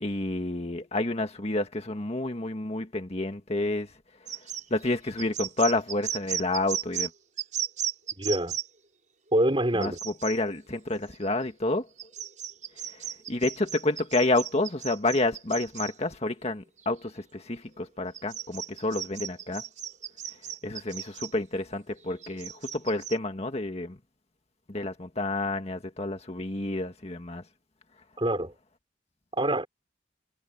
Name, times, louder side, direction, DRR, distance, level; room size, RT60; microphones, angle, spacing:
voice 1, 0.0-3.9 4.7-7.1 9.7-11.9 12.9-13.0 13.3-19.6 20.6-24.0 24.7-27.4, left 2 dB, 35° left, 1.8 m, -29 dB
sound 1, 4.3-7.1 7.4-8.7 9.8-10.4 11.1-11.4 12.0-15.9 16.8-16.9 18.1-21.3 22.0-23.2, right 10 dB, 45° right, 6.5 m, -35 dB
voice 2, 8.2-8.5 9.3-10.0 28.2-28.5 29.3-29.7, right 1 dB, 30° right, 5.3 m, -25 dB
head